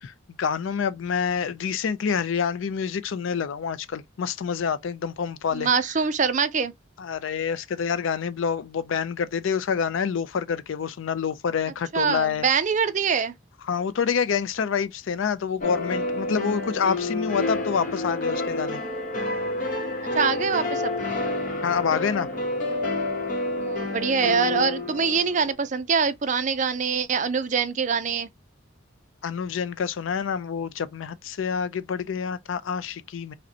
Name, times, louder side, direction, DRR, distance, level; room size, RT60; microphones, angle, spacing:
voice 1, 0.0-5.7 7.0-12.5 13.7-18.8 21.6-22.3 29.2-33.3, left 6 dB, 70° left, 0.4 m, -27 dB
voice 2, 5.5-6.7 11.9-13.3 20.1-21.0 23.6-28.3, right 6 dB, 35° right, 0.4 m, -24 dB
sound 1, 15.6-25.5, left 2 dB, 40° left, 0.9 m, -29 dB
5.0 x 2.1 x 2.7 m
head